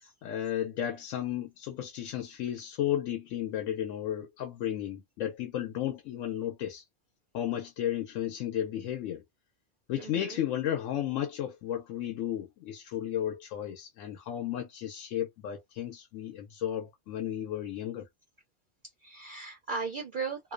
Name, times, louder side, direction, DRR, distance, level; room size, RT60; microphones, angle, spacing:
voice 1, 0.2-6.8 7.3-9.2 9.9-18.1, left 11 dB, 85° left, 0.9 m, -33 dB
voice 2, 10.0-10.4 19.0-20.5, right 4 dB, 55° right, 0.6 m, -37 dB
2.6 x 2.0 x 2.4 m
omnidirectional pair, 1.3 m